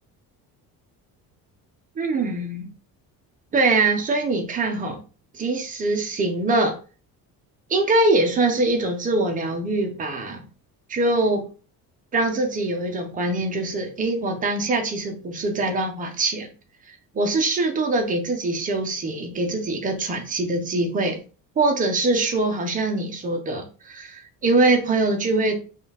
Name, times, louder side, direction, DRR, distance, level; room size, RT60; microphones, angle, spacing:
voice 1, 2.0-2.7 3.5-5.0 5.3-6.8 7.7-10.4 10.9-11.5 12.1-16.5 17.1-21.2 21.6-25.6, right 2 dB, 20° right, 0.6 m, -23 dB
5.5 x 2.4 x 3.3 m
cardioid pair, 180°, 37 cm